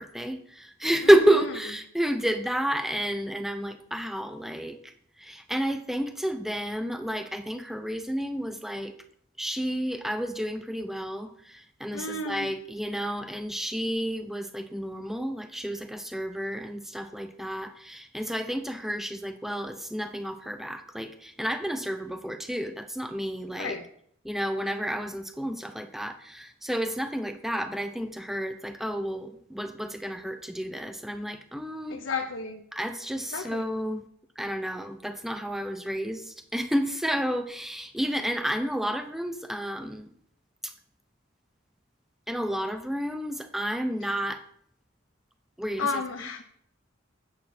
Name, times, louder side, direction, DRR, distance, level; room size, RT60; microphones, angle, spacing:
voice 1, 0.0-8.9 9.4-23.8 24.2-32.0 32.7-34.0 34.4-40.1 40.6-40.7 42.3-44.5 45.6-46.0, equal, ahead, 8 dB, 0.5 m, -30 dB
voice 2, 11.9-12.5 23.5-23.8 31.9-32.6 33.3-33.6 44.0-44.1 45.8-46.4, left 4 dB, 70° left, 4 dB, 0.7 m, -32 dB
8.7 x 7.3 x 4.3 m, 0.67 s
head